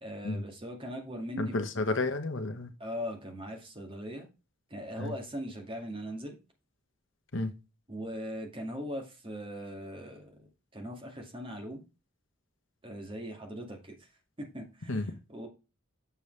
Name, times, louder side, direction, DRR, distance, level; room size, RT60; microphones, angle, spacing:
voice 1, 0.0-1.6 2.8-4.3 4.7-6.4 7.9-10.5 10.7-11.8 12.8-14.0 14.4-15.5, equal, 25° right, 3 dB, 2.1 m, -40 dB
voice 2, 1.4-2.7 5.0-5.1 7.3-7.5 14.9-15.1, left 2 dB, 60° left, 8 dB, 1.0 m, -31 dB
6.9 x 6.8 x 3.3 m, 0.29 s
head